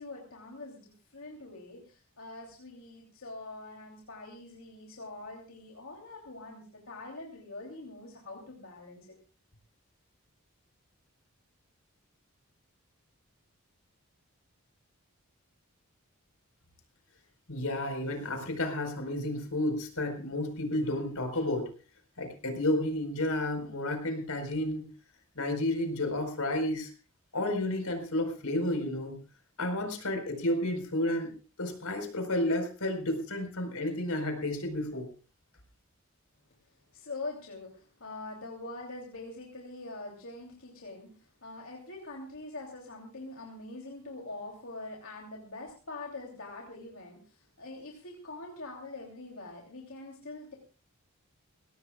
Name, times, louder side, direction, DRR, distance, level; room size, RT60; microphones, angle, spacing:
voice 1, 0.0-9.2 36.9-50.6, left 2 dB, 70° left, -1 dB, 3.1 m, -44 dB
voice 2, 17.5-21.7 22.2-24.9 25.4-26.9 27.3-29.2 29.6-31.3 31.6-35.1, left 1 dB, 85° left, 5 dB, 4.7 m, -31 dB
22.5 x 17.5 x 2.4 m, 0.35 s
head